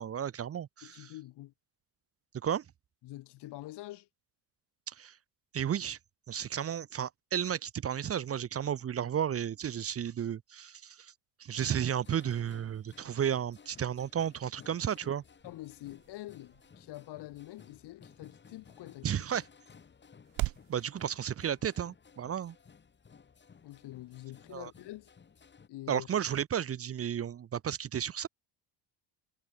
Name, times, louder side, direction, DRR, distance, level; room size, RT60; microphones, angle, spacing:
voice 1, 0.0-1.1 2.4-2.6 4.9-5.2 5.5-6.0 6.3-11.1 11.4-15.2 19.0-19.4 20.7-22.5 24.5-24.7 25.9-28.3, right 9 dB, 30° right, 1.2 m, -33 dB
voice 2, 0.8-1.5 3.0-4.1 15.4-19.1 23.6-25.1 25.7-26.1, left 16 dB, 60° left, 2.8 m, -46 dB
sound 1, 11.5-25.7, left 6 dB, 25° left, 6.2 m, -58 dB
sound 2, 14.5-20.7, right 22 dB, 85° right, 3.4 m, -44 dB
cardioid pair, 160°, 45 cm